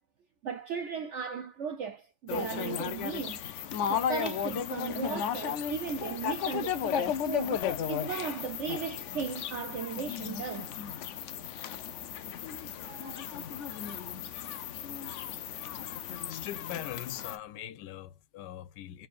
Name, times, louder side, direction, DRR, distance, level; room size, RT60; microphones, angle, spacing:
voice 1, 0.4-3.4 3.9-7.6 7.9-10.7 12.6-13.6, right 6 dB, 70° right, 0.7 m, -36 dB
sound 1, 2.3-17.4, left 9 dB, 70° left, 0.7 m, -35 dB
voice 2, 16.3-19.1, left 12 dB, 85° left, 1.3 m, -41 dB
4.3 x 3.8 x 2.4 m
omnidirectional pair, 1.8 m